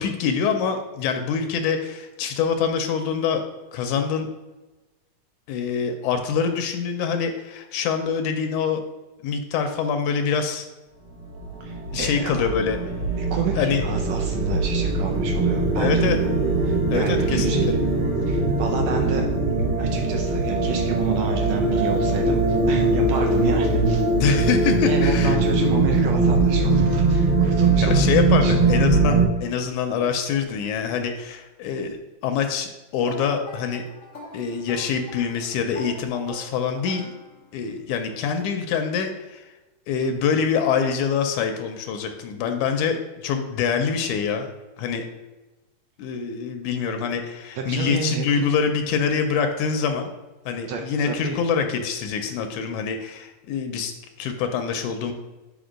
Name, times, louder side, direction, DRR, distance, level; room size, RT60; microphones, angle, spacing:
voice 1, 0.0-3.4 3.7-4.3 5.5-8.8 9.2-10.7 11.9-12.9 13.6-13.8 15.8-16.2 16.9-17.6 24.2-25.4 27.8-32.0 32.2-33.8 34.3-37.1 37.5-39.5 39.9-44.5 44.8-45.1 46.0-50.1 50.5-55.1, left 6 dB, 80° left, 6 dB, 1.9 m, -25 dB
sound 1, 11.2-29.3, right 2 dB, 50° right, 1.8 m, -21 dB
voice 2, 11.6-12.5 13.2-16.1 16.6-17.8 18.2-24.1 24.8-28.1 28.4-28.5 47.5-48.5 50.7-51.4, right 6 dB, 80° right, 2 dB, 1.5 m, -30 dB
sound 2, 33.0-37.7, left 1 dB, 45° left, 1.1 m, -42 dB
5.2 x 4.9 x 5.0 m, 1.1 s
omnidirectional pair, 3.7 m